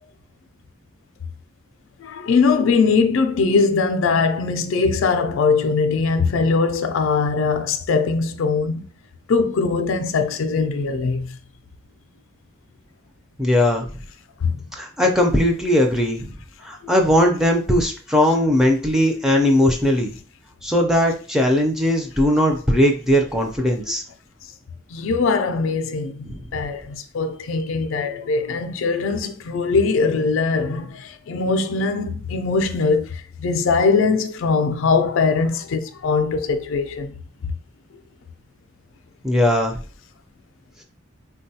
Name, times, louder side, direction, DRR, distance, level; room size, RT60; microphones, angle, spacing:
voice 1, 2.0-8.8 9.3-11.4 14.4-14.6 24.9-37.2, left 4 dB, 70° left, 0.4 m, -21 dB
voice 2, 13.4-13.9 14.8-16.3 16.6-20.1 20.6-24.0 26.2-26.5 39.2-39.8, left 1 dB, ahead, 0.4 m, -19 dB
3.6 x 2.2 x 2.7 m
head